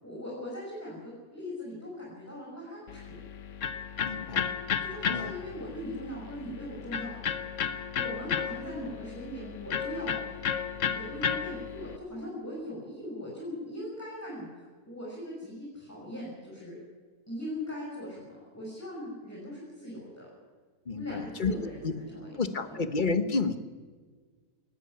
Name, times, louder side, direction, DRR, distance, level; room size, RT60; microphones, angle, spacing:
voice 1, 0.0-3.2 4.8-7.1 7.9-10.4 10.9-16.8 17.3-20.3 20.9-22.3 22.6-22.8, left 1 dB, 10° left, -5 dB, 6.2 m, -40 dB
Electric guitar, 2.9-12.0, left 7 dB, 55° left, 1.2 m, -34 dB
voice 2, 4.0-4.5 5.1-5.3 20.9-21.9 22.4-23.6, left 4 dB, 35° left, 10 dB, 1.2 m, -30 dB
19.0 x 14.5 x 9.9 m, 1.5 s
omnidirectional pair, 1.6 m